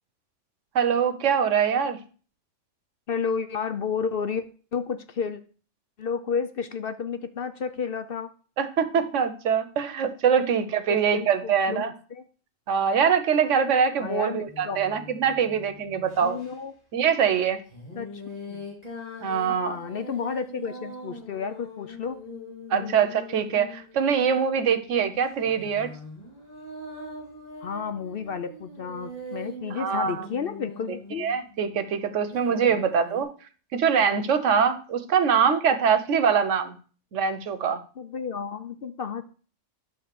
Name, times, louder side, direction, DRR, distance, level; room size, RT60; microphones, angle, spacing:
voice 1, 0.7-2.0 8.6-11.9 12.7-16.4 16.9-17.6 19.2-19.8 22.7-25.9 29.7-30.3 31.2-33.3 33.7-36.7 37.1-37.8, right 7 dB, 75° right, 9 dB, 1.2 m, -23 dB
voice 2, 3.1-4.4 4.7-5.4 6.0-8.3 10.9-12.2 14.0-14.8 16.2-16.7 17.9-18.2 18.5-18.6 19.5-22.2 22.7-23.0 27.6-31.3 32.7-32.8 38.0-39.2, left 6 dB, 55° left, 10 dB, 0.8 m, -31 dB
sound 1, 14.4-16.5 17.7-24.4 25.2-31.6 32.3-33.2, left 1 dB, 30° left, 3.5 m, -42 dB
10.5 x 3.7 x 6.7 m, 0.39 s
omnidirectional pair, 1.3 m